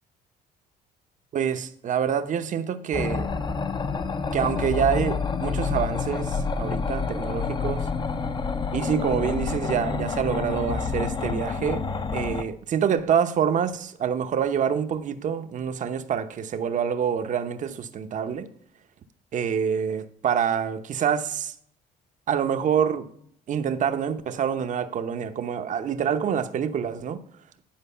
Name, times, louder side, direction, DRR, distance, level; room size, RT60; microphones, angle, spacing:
voice 1, 1.3-3.3 4.3-7.8 8.7-11.8 12.1-18.5 19.3-21.5 22.3-23.1 23.5-27.2, right 8 dB, 50° right, 0.8 m, -26 dB
sound 1, 2.9-12.4, left 5 dB, 25° left, 0.7 m, -28 dB
10.5 x 4.8 x 5.5 m
cardioid pair, 110°, 17 cm